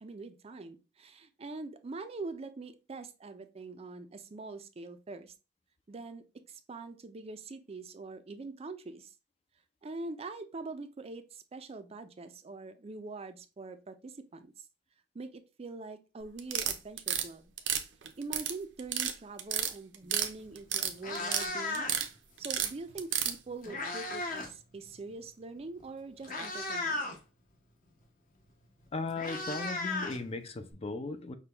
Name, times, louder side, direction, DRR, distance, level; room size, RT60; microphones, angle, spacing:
voice 1, 0.0-5.3 5.9-9.1 9.8-14.7 15.1-17.5 18.2-21.9 22.4-27.0, right 3 dB, 35° right, 0.4 m, -44 dB
sound 1, 16.4-17.3 17.6-18.5 18.8-19.1 19.4-20.3 20.6-21.5 21.7-22.1 22.4-23.3, right 9 dB, 70° right, 0.6 m, -30 dB
Meow, 20.4-20.5 20.9-22.2 23.2-24.6 24.8-25.1 25.8-25.9 26.2-27.2 28.5-28.6 28.8-30.7, left 2 dB, 50° left, 0.9 m, -36 dB
voice 2, 28.9-31.3, left 3 dB, 35° left, 0.5 m, -37 dB
5.8 x 2.2 x 3.3 m
head